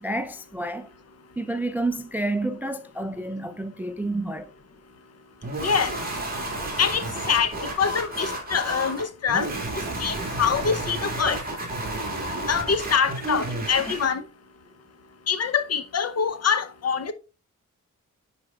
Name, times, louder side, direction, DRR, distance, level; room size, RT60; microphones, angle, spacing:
voice 1, 0.0-0.9 1.4-4.5, right 2 dB, 5° right, 0.3 m, -29 dB
sound 1, 5.4-14.1, right 1 dB, 30° right, 2.0 m, -31 dB
voice 2, 5.6-6.0 6.8-9.5 10.0-11.4 12.5-14.3 15.3-17.1, left 6 dB, 55° left, 0.7 m, -25 dB
9.9 x 4.3 x 2.3 m
wide cardioid pair, 140°, 31 cm